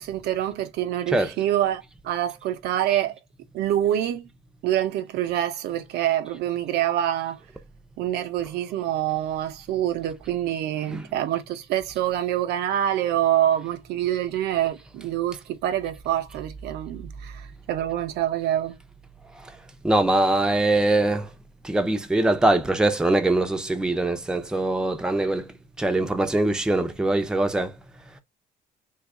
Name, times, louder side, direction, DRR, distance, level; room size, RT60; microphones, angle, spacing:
voice 1, 0.0-3.2 3.5-4.3 4.6-7.4 8.0-18.8, right 12 dB, 75° right, 0.5 m, -26 dB
voice 2, 19.8-21.3 21.6-25.5 25.8-27.7, right 2 dB, 5° right, 0.5 m, -22 dB
2.7 x 2.3 x 3.6 m
cardioid pair, 110°, 17 cm